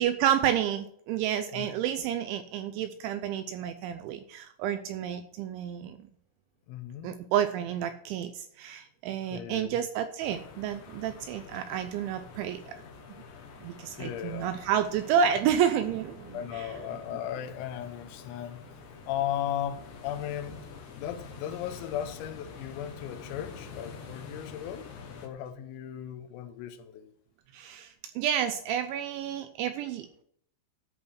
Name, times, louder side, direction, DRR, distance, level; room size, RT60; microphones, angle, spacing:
voice 1, 0.0-6.0 7.0-12.8 13.6-16.9 27.5-30.2, right 9 dB, 80° right, 9 dB, 2.8 m, -30 dB
voice 2, 6.7-7.1 9.3-9.8 14.0-14.6 16.3-18.6 19.1-24.9 25.2-27.1, left 10 dB, 85° left, 9 dB, 3.6 m, -36 dB
sound 1, 10.2-25.3, left 5 dB, 70° left, 3.4 m, -47 dB
13.5 x 5.6 x 6.3 m, 0.67 s
omnidirectional pair, 5.9 m